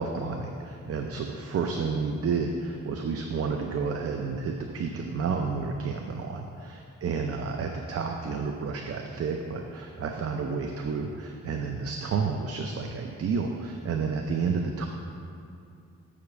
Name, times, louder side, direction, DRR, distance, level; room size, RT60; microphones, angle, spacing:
voice 1, 0.0-14.9, right 5 dB, 50° right, 3 dB, 0.6 m, -30 dB
7.0 x 5.0 x 6.9 m, 2.5 s
cardioid pair, 120°, 30 cm